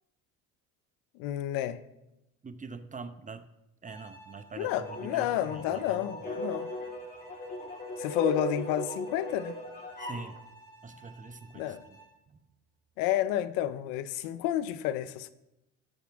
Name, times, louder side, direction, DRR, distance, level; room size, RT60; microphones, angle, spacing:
voice 1, 1.1-1.8 4.6-6.7 8.0-9.6 11.5-11.8 13.0-15.3, left 12 dB, 80° left, 0.7 m, -30 dB
voice 2, 2.4-3.5 3.8-6.1 10.0-10.4 10.8-12.0 12.3-12.4, right 4 dB, 20° right, 0.9 m, -44 dB
Bowed string instrument, 3.9-12.2, right 2 dB, 10° left, 4.5 m, -54 dB
sound 1, 4.6-10.3, left 1 dB, 25° left, 4.0 m, -37 dB
17.5 x 7.2 x 3.5 m
supercardioid pair, 80°, 35 cm